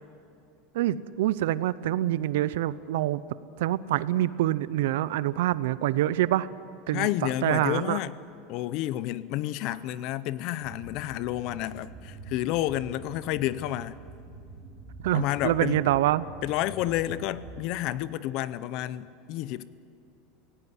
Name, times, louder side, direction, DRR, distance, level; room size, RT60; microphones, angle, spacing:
voice 1, 0.7-3.2 3.6-6.5 6.9-7.1 7.4-8.0 15.0-16.3, right 14 dB, 80° right, 0.6 m, -26 dB
voice 2, 6.9-8.2 8.5-14.0 15.1-15.8 16.4-19.6, left 14 dB, 50° left, 0.6 m, -30 dB
sound 1, 10.6-17.7, right 3 dB, 25° right, 2.5 m, -45 dB
18.0 x 17.0 x 9.4 m
supercardioid pair, 155°, 0 cm